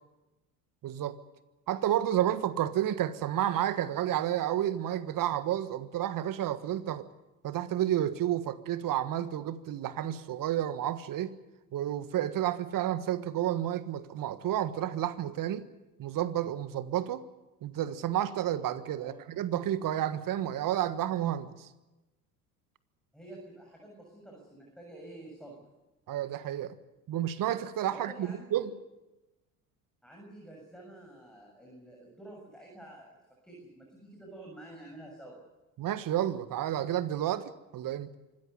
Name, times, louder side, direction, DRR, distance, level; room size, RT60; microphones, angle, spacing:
voice 1, 0.8-1.2 1.7-7.1 7.4-11.3 11.7-15.6 16.0-17.2 17.6-21.7 26.1-26.8 27.1-28.7 35.8-38.1, right 11 dB, 45° right, 1.6 m, -31 dB
voice 2, 23.1-25.6 27.9-28.7 30.0-33.1 33.4-35.4, right 1 dB, ahead, 7.1 m, -49 dB
25.5 x 14.5 x 9.7 m
hypercardioid pair, 65°, 46 cm